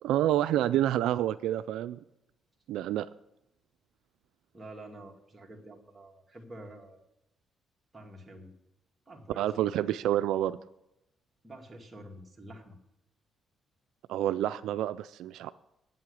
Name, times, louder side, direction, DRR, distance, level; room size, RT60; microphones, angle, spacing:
voice 1, 0.0-2.0 2.7-3.1 9.4-10.6 14.1-15.5, right 12 dB, 85° right, 12 dB, 0.3 m, -28 dB
voice 2, 4.5-7.0 7.9-8.5 9.1-9.8 11.4-12.7, right 1 dB, 20° right, 1 dB, 2.2 m, -48 dB
9.2 x 7.7 x 8.2 m, 0.87 s
cardioid pair, 90°, 0 cm